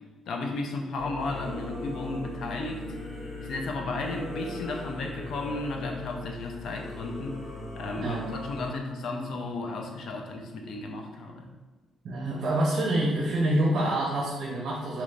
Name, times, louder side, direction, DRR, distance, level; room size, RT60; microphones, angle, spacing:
voice 1, 0.3-2.8 3.4-7.4 7.8-11.5, left 2 dB, 55° left, 2 dB, 0.4 m, -34 dB
Singing / Musical instrument, 1.0-8.7, left 2 dB, 20° left, 0.8 m, -39 dB
voice 2, 12.0-15.0, right 1 dB, 45° right, -3 dB, 0.6 m, -26 dB
3.2 x 2.9 x 2.5 m, 1.2 s
cardioid pair, 170°, 0 cm